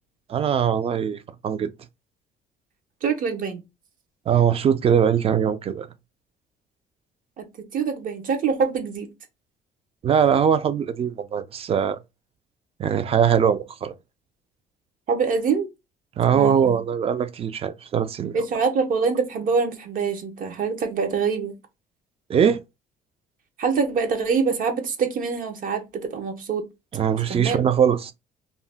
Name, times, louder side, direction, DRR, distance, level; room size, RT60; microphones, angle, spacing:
voice 1, 0.3-1.7 4.3-5.9 10.0-12.0 12.8-13.9 16.2-18.4 22.3-22.6 26.9-28.1, right 8 dB, 35° right, 0.4 m, -21 dB
voice 2, 3.0-3.6 7.4-7.5 7.7-9.1 15.1-15.7 16.3-16.7 18.3-21.5 23.6-26.6 27.3-27.6, right 5 dB, 55° right, 0.8 m, -24 dB
2.7 x 2.1 x 3.3 m
cardioid pair, 110°, 17 cm